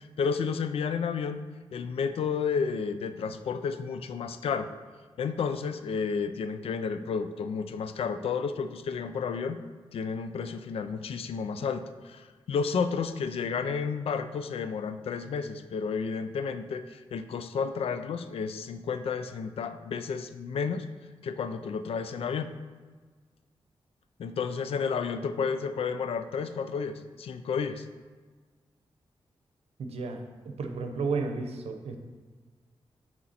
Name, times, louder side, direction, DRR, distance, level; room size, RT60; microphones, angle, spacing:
voice 1, 0.0-1.4 1.7-4.7 5.2-9.6 9.9-20.9 21.2-22.6 24.2-27.9, left 6 dB, 70° left, 10 dB, 0.4 m, -31 dB
voice 2, 29.8-32.0, right 4 dB, 80° right, 5 dB, 0.7 m, -33 dB
6.3 x 4.3 x 4.2 m, 1.4 s
wide cardioid pair, 165°, 10 cm